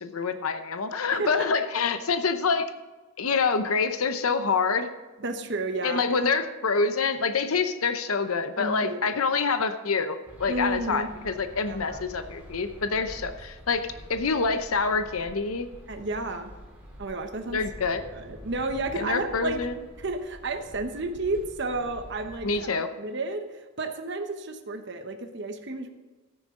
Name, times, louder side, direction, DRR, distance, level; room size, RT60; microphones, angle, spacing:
voice 1, 0.0-2.7 3.2-4.9 5.8-15.7 17.5-18.0 18.9-19.7 22.4-22.9, left 4 dB, 85° left, 9 dB, 0.8 m, -26 dB
voice 2, 1.2-1.6 5.2-6.0 8.6-9.3 10.5-11.1 11.6-12.0 15.9-16.5 17.0-19.6 20.0-23.5 23.8-25.9, right 2 dB, 55° right, 6 dB, 1.0 m, -32 dB
sound 1, 10.2-22.6, equal, 5° right, 2.6 m, -46 dB
13.5 x 10.0 x 3.8 m, 1.2 s
head